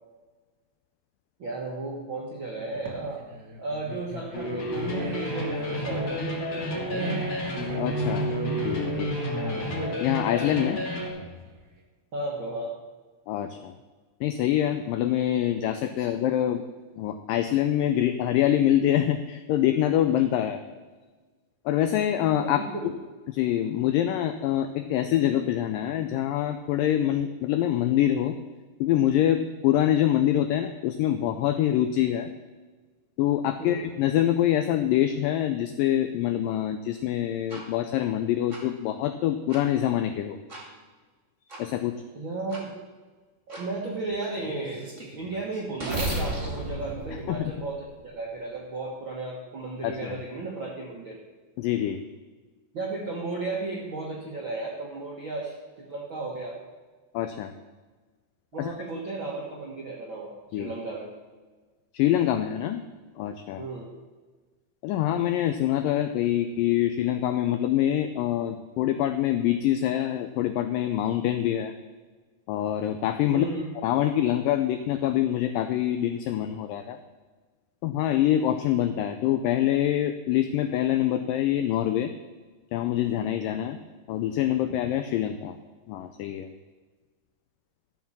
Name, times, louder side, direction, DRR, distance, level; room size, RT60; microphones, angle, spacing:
voice 1, 1.4-3.2 3.6-7.1 12.1-12.7 16.0-16.1 22.4-22.9 33.6-33.8 42.1-42.7 43.5-51.1 52.7-56.6 58.5-61.1 63.6-63.9 73.3-73.7, right 2 dB, 65° right, -3 dB, 1.2 m, -34 dB
sound 1, 2.6-11.6, right 2 dB, 85° right, 0.9 m, -35 dB
sound 2, 4.3-11.1, left 1 dB, 45° left, 2.8 m, -31 dB
voice 2, 7.8-8.3 8.6-9.2 10.0-10.8 13.3-13.7 14.2-16.6 17.0-20.6 21.7-22.6 23.3-28.4 28.8-32.3 33.2-40.4 41.6-42.0 47.3-47.5 49.8-50.2 51.6-52.0 57.1-57.5 58.6-58.7 60.5-60.7 61.9-62.8 63.2-63.6 64.8-71.7 72.5-73.5 73.8-77.0 77.8-82.1 82.7-83.8 84.1-85.6 85.9-86.5, left 11 dB, 85° left, 8 dB, 1.9 m, -25 dB
sound 3, 37.5-37.6 38.5-38.6 39.5-39.6 40.5-40.6 41.5-41.6 42.5-42.6 43.5-43.6 44.2-48.1, right 1 dB, 25° right, 1.9 m, -34 dB
13.5 x 5.5 x 7.2 m, 1.3 s
omnidirectional pair, 4.5 m